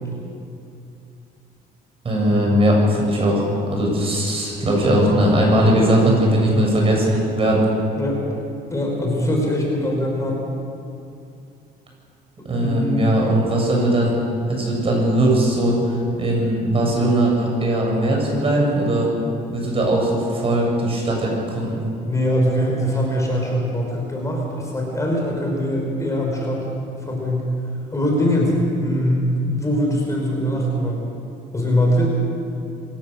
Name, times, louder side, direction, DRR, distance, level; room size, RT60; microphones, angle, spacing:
voice 1, 2.0-7.7 12.4-14.2 14.5-19.1 19.5-21.8, right 1 dB, 35° right, -1 dB, 7.4 m, -19 dB
voice 2, 8.7-10.4 12.5-13.1 22.1-26.7 27.0-27.5 27.9-31.0 31.5-32.0, equal, 20° left, -1 dB, 5.7 m, -22 dB
25.5 x 16.5 x 6.9 m, 2.6 s
cardioid pair, 110°, 17 cm